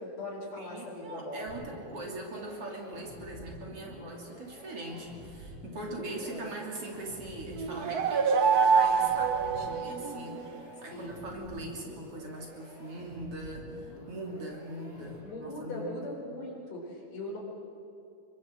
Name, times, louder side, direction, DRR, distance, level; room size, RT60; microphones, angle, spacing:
voice 1, 0.0-1.6 5.9-6.5 10.9-11.3 15.2-17.4, left 1 dB, 65° left, -2 dB, 6.1 m, -40 dB
voice 2, 0.6-15.9, right 1 dB, 50° right, -1 dB, 3.9 m, -41 dB
sound 1, 1.5-15.5, left 1 dB, 25° left, 7.1 m, -49 dB
sound 2, 7.6-10.5, right 6 dB, 80° right, 0.8 m, -26 dB
24.5 x 24.0 x 7.6 m, 2.7 s
omnidirectional pair, 3.4 m